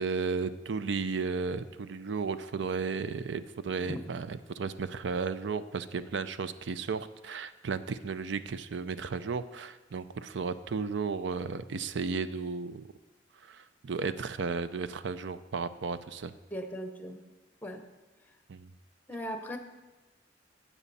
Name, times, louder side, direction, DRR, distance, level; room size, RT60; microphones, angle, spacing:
voice 1, 0.0-12.9 13.4-16.3 18.5-18.7, right 5 dB, 70° right, 13 dB, 0.5 m, -34 dB
voice 2, 16.5-17.2 17.6-17.8 19.1-19.6, equal, 10° left, 6 dB, 0.9 m, -38 dB
12.0 x 8.4 x 4.1 m, 1.2 s
head